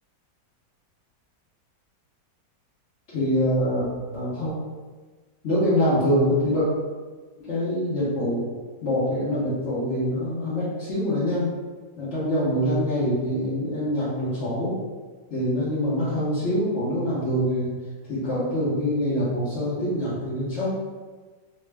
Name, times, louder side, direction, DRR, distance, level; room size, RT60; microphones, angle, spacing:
voice 1, 3.1-4.5 5.4-6.7 7.4-8.4 8.8-11.5 12.0-14.7 15.3-17.7 18.1-20.7, equal, 50° left, -12 dB, 0.9 m, -24 dB
3.3 x 2.0 x 3.3 m, 1.4 s
omnidirectional pair, 2.0 m